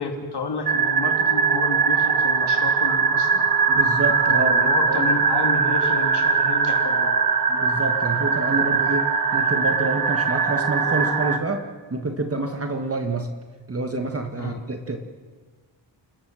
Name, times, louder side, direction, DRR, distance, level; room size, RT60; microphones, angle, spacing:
voice 1, 0.0-3.7 4.3-7.1 14.4-14.6, left 3 dB, 60° left, 3 dB, 3.0 m, -31 dB
sound 1, 0.7-11.4, right 5 dB, 50° right, 1.7 m, -21 dB
voice 2, 3.7-5.1 7.5-11.6 11.9-13.3 13.7-15.0, right 2 dB, 30° right, 5 dB, 1.5 m, -27 dB
29.5 x 21.0 x 6.3 m, 1.5 s
wide cardioid pair, 140°, 45 cm